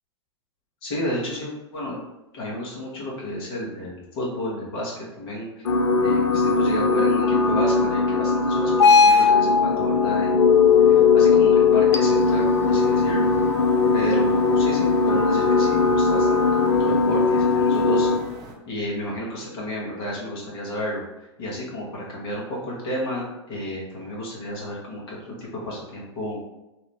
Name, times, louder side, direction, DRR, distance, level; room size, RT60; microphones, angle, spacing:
voice 1, 0.8-2.0 2.3-5.6 6.0-10.4 10.9-13.3 13.9-18.3 18.7-21.0 21.4-26.4, left 1 dB, 55° left, -4 dB, 1.3 m, -32 dB
sound 1, 5.7-18.2, left 4 dB, 80° left, 0.4 m, -18 dB
sound 2, 12.1-18.5, right 1 dB, 25° right, 0.7 m, -41 dB
2.8 x 2.5 x 3.4 m, 0.96 s
hypercardioid pair, 105°, 15 cm